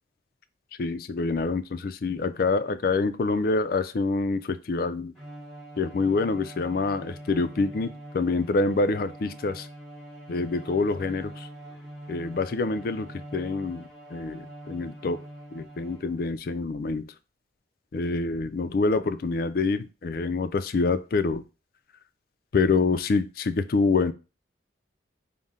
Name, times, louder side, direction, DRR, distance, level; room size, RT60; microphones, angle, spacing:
voice 1, 0.8-5.1 5.8-9.7 10.3-11.5 12.1-15.2 15.5-17.1 17.9-21.4 22.5-24.1, left 3 dB, 50° left, 11 dB, 0.3 m, -26 dB
Bowed string instrument, 5.1-16.4, right 1 dB, 5° left, 1.0 m, -44 dB
5.4 x 2.1 x 3.6 m, 0.31 s
head